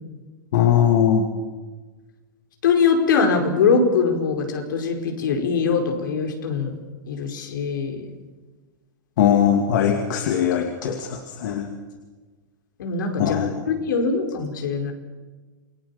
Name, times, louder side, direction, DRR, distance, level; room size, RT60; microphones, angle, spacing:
voice 1, 0.5-1.3 9.2-11.1 11.4-11.7 13.2-13.5, left 9 dB, 65° left, 4 dB, 2.5 m, -19 dB
voice 2, 2.6-6.8 7.1-8.0 12.8-14.9, left 5 dB, 85° left, 3 dB, 5.1 m, -22 dB
28.0 x 20.0 x 7.2 m, 1.3 s
supercardioid pair, 140°, 10 cm